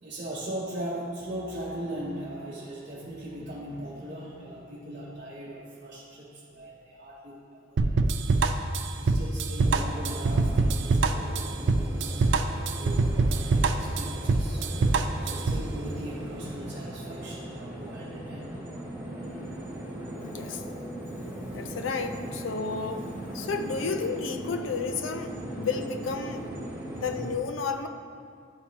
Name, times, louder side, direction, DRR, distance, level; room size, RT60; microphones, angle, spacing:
voice 1, 0.0-8.2 8.9-14.7 15.2-18.5 22.2-22.5 27.1-27.3, right 1 dB, 40° right, -6 dB, 0.8 m, -39 dB
sound 1, 7.8-15.7, right 3 dB, 65° right, 0.4 m, -24 dB
sound 2, 9.6-27.3, right 1 dB, 10° right, 0.9 m, -39 dB
voice 2, 20.2-20.6 21.5-26.5 27.0-27.9, left 4 dB, 75° left, 7 dB, 0.5 m, -32 dB
11.0 x 4.5 x 2.8 m, 2.2 s
head